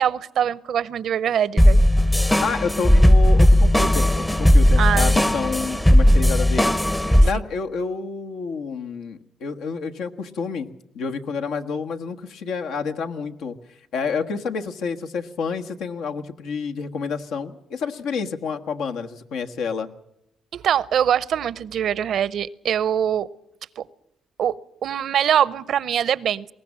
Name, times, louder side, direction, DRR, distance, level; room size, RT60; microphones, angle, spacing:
voice 1, 0.0-1.8 4.8-5.1 7.3-7.4 20.5-23.3 23.8-23.9 24.4-24.6 24.8-26.5, right 9 dB, 65° right, 20 dB, 0.7 m, -23 dB
sound 1, 1.6-7.3, left 1 dB, 10° left, 0.7 m, -16 dB
voice 2, 2.4-6.7 7.2-10.7 10.9-19.9, left 5 dB, 80° left, 5 dB, 1.4 m, -29 dB
21.0 x 18.0 x 7.3 m, 0.81 s
cardioid pair, 90°, 0 cm